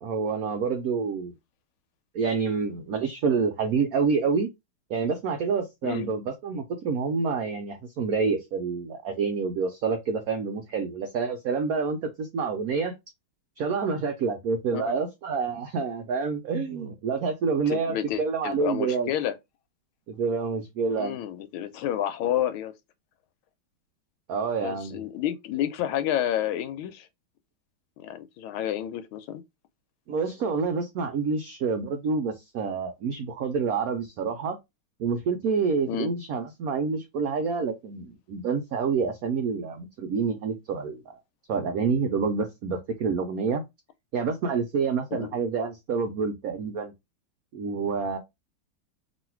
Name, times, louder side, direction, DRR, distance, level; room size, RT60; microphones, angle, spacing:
voice 1, 0.0-1.3 2.1-4.5 4.9-12.9 13.6-19.1 20.1-21.2 24.3-25.0 30.1-34.6 35.0-41.2 41.5-43.6 44.1-46.9 47.5-48.2, right 5 dB, 80° right, 0.8 m, -28 dB
voice 2, 17.7-19.4 20.9-22.7 24.6-27.1 28.0-29.4 35.9-36.1 45.1-45.3, left 11 dB, 90° left, 1.5 m, -30 dB
3.1 x 2.6 x 4.3 m
omnidirectional pair, 2.2 m